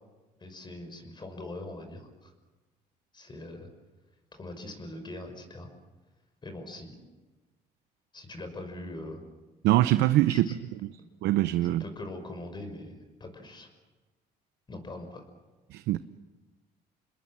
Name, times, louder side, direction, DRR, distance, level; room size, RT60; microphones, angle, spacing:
voice 1, 0.4-2.3 3.1-3.7 4.3-5.7 6.4-7.0 8.1-9.2 10.3-10.5 11.0-11.1 11.6-13.7 14.7-15.2, left 2 dB, 25° left, 5.8 m, -42 dB
voice 2, 9.6-10.5 11.2-11.8 15.7-16.0, right 15 dB, 80° right, 0.7 m, -23 dB
28.5 x 21.0 x 7.4 m
cardioid pair, 110°, 17 cm